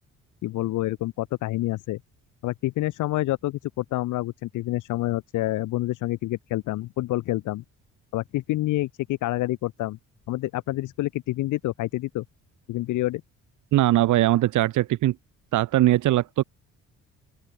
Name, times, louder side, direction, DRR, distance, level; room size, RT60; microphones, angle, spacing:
voice 1, 0.4-2.0 2.4-7.6 8.1-10.0 10.3-12.2 12.7-13.2, left 17 dB, 85° left, 0.9 m, -28 dB
voice 2, 13.7-15.1 15.5-16.4, right 15 dB, 75° right, 1.2 m, -20 dB
open air
cardioid pair, 90°, 30 cm